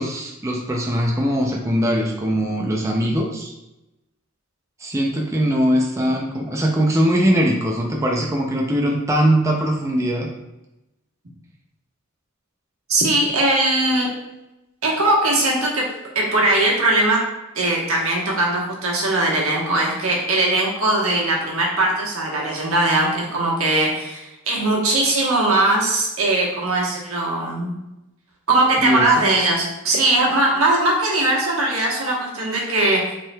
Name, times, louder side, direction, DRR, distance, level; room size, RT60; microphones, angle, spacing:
voice 1, 0.0-3.5 4.8-10.3 28.8-29.3, equal, 15° right, -1 dB, 0.4 m, -21 dB
voice 2, 12.9-14.1 14.8-15.9 16.1-17.2 17.5-27.7 28.5-33.1, right 2 dB, 85° right, -2 dB, 1.2 m, -20 dB
5.2 x 3.7 x 2.3 m, 0.95 s
head